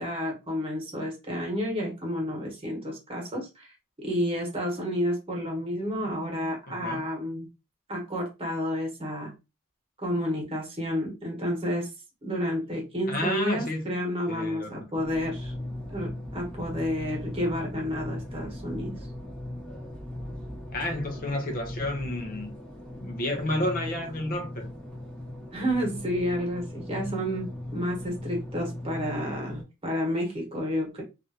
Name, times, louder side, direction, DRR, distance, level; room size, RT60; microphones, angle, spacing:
voice 1, 0.0-7.5 7.9-9.3 10.0-11.9 12.2-15.5 15.9-19.0 25.5-31.0, equal, 25° right, 1.2 m, -30 dB
voice 2, 6.7-7.1 13.1-13.8 14.3-14.9 20.7-22.5 23.0-24.7, left 1 dB, 40° left, 0.6 m, -31 dB
sound 1, 14.9-29.6, left 1 dB, 5° left, 0.9 m, -38 dB
3.1 x 2.5 x 2.7 m
head